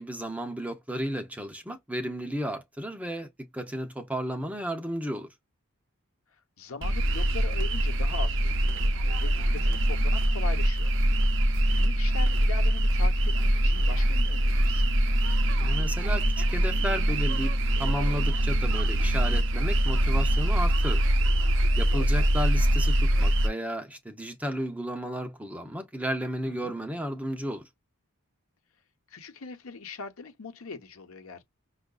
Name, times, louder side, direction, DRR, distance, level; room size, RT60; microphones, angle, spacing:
voice 1, 0.0-5.3 15.6-21.1 21.8-27.7, equal, 5° right, 0.6 m, -33 dB
voice 2, 6.6-10.9 11.3-11.4 11.7-14.9 21.9-22.1 26.5-26.7 29.1-31.4, left 5 dB, 65° left, 0.9 m, -41 dB
sound 1, 6.8-23.5, right 1 dB, 60° right, 0.6 m, -24 dB
5.6 x 2.4 x 2.3 m
head